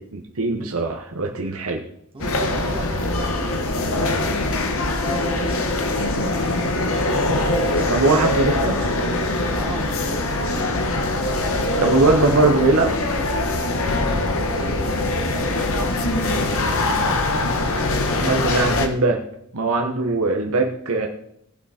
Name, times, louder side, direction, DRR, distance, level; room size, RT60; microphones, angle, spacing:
voice 1, 0.1-1.8 7.9-8.8 11.8-13.0 18.2-19.2 19.5-21.1, right 3 dB, 70° right, 3 dB, 1.1 m, -20 dB
voice 2, 2.1-7.2 7.6-10.4 13.8-16.6, right 2 dB, 25° right, -1 dB, 2.5 m, -38 dB
Large Hall Ambiance, 2.2-18.9, left 2 dB, 65° left, 1.4 m, -22 dB
17.5 x 5.9 x 4.3 m, 0.73 s
head